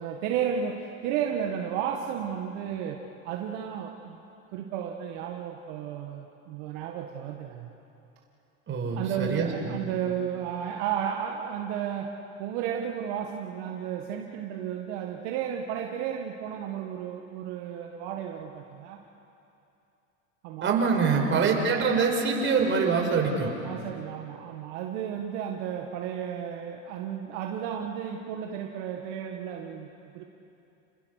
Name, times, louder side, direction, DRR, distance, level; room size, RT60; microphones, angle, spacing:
voice 1, 0.0-3.0 3.2-4.2 4.5-7.8 9.0-12.1 12.4-19.0 20.4-20.8 21.1-21.6 23.6-29.9 30.1-30.2, right 8 dB, 65° right, 1 dB, 1.8 m, -33 dB
voice 2, 8.7-9.9 20.6-23.5, right 5 dB, 30° right, 1 dB, 5.0 m, -25 dB
30.0 x 20.5 x 6.6 m, 2.8 s
supercardioid pair, 110°, 37 cm